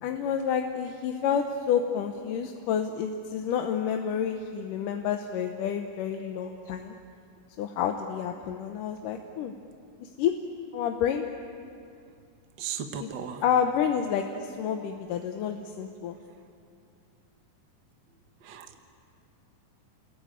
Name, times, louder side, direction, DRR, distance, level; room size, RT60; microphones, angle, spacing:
voice 1, 0.0-6.9 7.6-9.5 10.0-10.3 10.7-11.2 13.0-13.1 13.4-16.2, left 8 dB, 75° left, 5 dB, 2.5 m, -29 dB
voice 2, 12.6-13.4 18.4-18.8, right 8 dB, 60° right, 5 dB, 1.2 m, -36 dB
28.5 x 21.5 x 8.9 m, 2.4 s
omnidirectional pair, 3.8 m